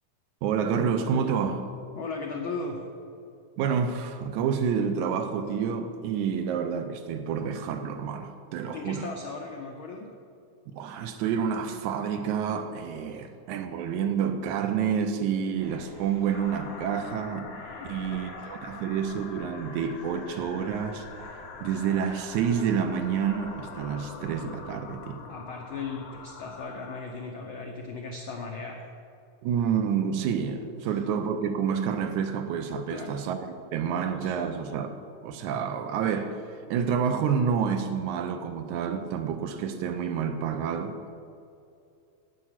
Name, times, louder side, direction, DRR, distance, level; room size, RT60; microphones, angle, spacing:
voice 1, 0.4-1.7 3.6-9.1 10.7-17.5 17.9-21.1 21.6-25.2 29.4-35.0 35.2-36.4 36.7-40.9, right 7 dB, 80° right, 2.1 m, -28 dB
voice 2, 2.0-2.8 8.7-10.1 17.8-18.5 25.3-28.9 32.9-33.2 34.0-34.5, left 4 dB, 80° left, 1.1 m, -37 dB
sound 1, 15.6-24.0, right 1 dB, 65° right, 3.9 m, -50 dB
sound 2, 16.3-27.0, left 5 dB, 65° left, 1.7 m, -44 dB
11.0 x 9.0 x 5.7 m
omnidirectional pair, 3.5 m